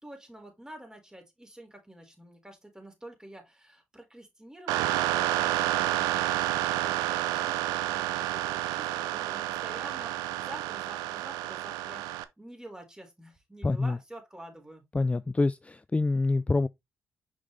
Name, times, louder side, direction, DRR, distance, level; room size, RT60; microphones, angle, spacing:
voice 1, 0.0-12.0 12.4-14.8, right 1 dB, 10° right, 4.2 m, -48 dB
sound 1, 4.7-12.2, right 15 dB, 85° right, 0.6 m, -29 dB
voice 2, 13.6-14.0 14.9-16.7, left 3 dB, 20° left, 0.4 m, -26 dB
6.4 x 5.4 x 3.3 m
hypercardioid pair, 45°, 6 cm